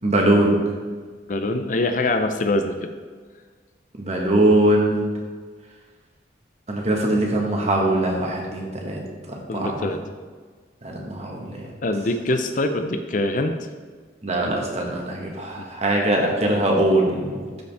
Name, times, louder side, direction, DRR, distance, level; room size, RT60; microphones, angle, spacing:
voice 1, 0.0-0.6 4.0-5.1 6.7-9.0 9.3-9.7 10.8-11.7 14.2-17.4, right 1 dB, 35° right, 0 dB, 1.5 m, -21 dB
voice 2, 1.3-2.9 9.5-10.0 11.8-13.5 15.6-15.7, left 2 dB, 45° left, 7 dB, 0.5 m, -24 dB
12.5 x 5.2 x 3.5 m, 1.5 s
head